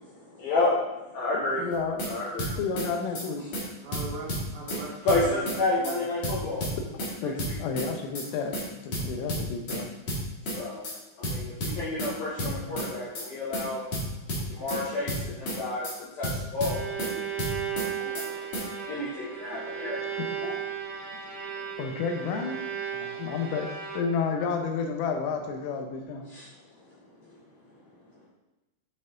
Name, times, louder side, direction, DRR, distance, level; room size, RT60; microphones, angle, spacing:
voice 1, 0.2-1.6 2.0-2.6 5.0-6.6 7.2-7.6 10.6-10.8 11.2-13.8 14.5-17.2 18.0-18.4 18.6-20.3 21.5-21.7 26.3-26.5 27.2-27.4, left 2 dB, 65° left, -7 dB, 2.6 m, -30 dB
voice 2, 1.6-2.0 2.6-3.4 7.2-9.9 12.4-12.8 18.0-18.4 19.5-19.9 20.4-20.6 21.8-22.6 23.0-23.7 23.9-26.2, left 5 dB, 80° left, 4 dB, 3.3 m, -31 dB
sound 1, 1.7-2.1 2.4-2.9 3.1-3.3 3.5-3.6 3.9-4.8 5.1-5.6 5.8-6.0 6.2-7.1 7.4-7.9 8.1-8.3 8.5-8.6 8.9-9.8 10.1-10.6 10.8-11.0 11.2-12.1 12.4-12.9 13.1-13.3 13.5-13.6 13.9-14.8 15.1-15.6 15.8-16.0 16.2-17.1 17.4-17.9 18.1-18.3 18.5-18.6, equal, 50° left, 2.2 m, -31 dB
voice 3, 3.7-6.1, right 3 dB, 80° right, -5 dB, 2.1 m, -40 dB
Bowed string instrument, 16.6-24.4, right 8 dB, 65° right, 1.6 m, -35 dB
10.5 x 4.3 x 3.7 m, 1.0 s
omnidirectional pair, 5.8 m